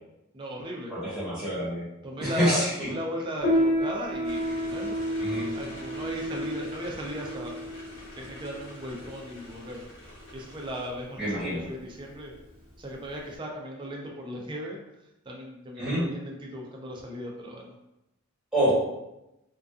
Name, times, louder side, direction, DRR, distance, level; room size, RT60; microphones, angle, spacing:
voice 1, 0.3-0.9 2.0-7.6 8.2-9.8 10.3-12.3 12.8-14.8 15.3-17.7, equal, 20° right, -1 dB, 0.4 m, -37 dB
voice 2, 0.9-1.9 2.2-2.7 5.2-5.5 11.2-11.6 15.8-16.0 18.5-18.7, equal, 5° right, -10 dB, 1.0 m, -27 dB
Piano, 3.4-13.4, equal, 30° left, 0.5 m, -31 dB
sound 1, 4.2-10.9, left 1 dB, 75° left, 0.7 m, -45 dB
2.4 x 2.3 x 2.3 m, 0.91 s
head